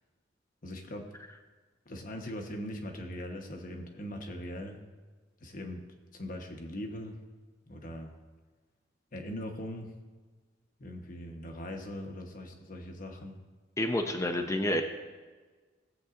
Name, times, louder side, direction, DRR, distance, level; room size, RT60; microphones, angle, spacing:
voice 1, 0.6-1.1 1.9-4.8 5.4-5.8 6.1-7.2 7.7-8.2 9.1-9.9 10.8-13.4, left 1 dB, 45° left, 3 dB, 1.1 m, -40 dB
voice 2, 13.8-14.8, left 1 dB, 15° left, 4 dB, 0.6 m, -29 dB
17.0 x 7.9 x 2.5 m, 1.4 s
head